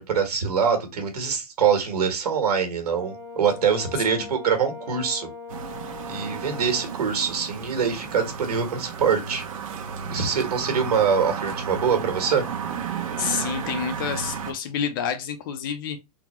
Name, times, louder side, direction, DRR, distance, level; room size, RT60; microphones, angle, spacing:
voice 1, 0.0-5.3 6.1-9.5 10.1-12.4, right 6 dB, 80° right, 1.5 m, -24 dB
Brass instrument, 2.8-6.9, left 3 dB, 10° right, 0.9 m, -40 dB
sound 1, 5.5-14.5, right 7 dB, 60° right, 1.0 m, -33 dB
voice 2, 13.2-16.0, left 7 dB, 35° left, 0.5 m, -29 dB
4.0 x 2.1 x 4.2 m
hypercardioid pair, 165°, 20 cm